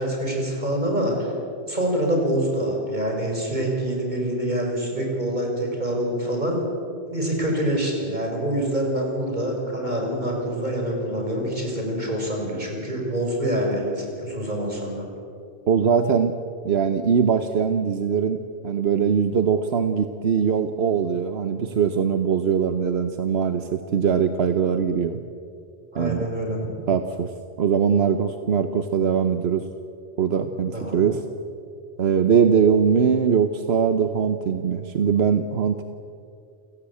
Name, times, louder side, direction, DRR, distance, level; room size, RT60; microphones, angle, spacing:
voice 1, 0.0-1.3 1.7-6.6 7.1-15.1 25.9-26.6 30.7-31.0, right 1 dB, 45° right, 0 dB, 5.8 m, -26 dB
voice 2, 15.7-16.4 16.6-25.2 25.9-26.3 26.9-27.3 27.6-29.7 30.2-31.2 32.0-35.8, right 7 dB, 80° right, 9 dB, 1.2 m, -21 dB
29.0 x 17.0 x 8.5 m, 2.5 s
omnidirectional pair, 1.0 m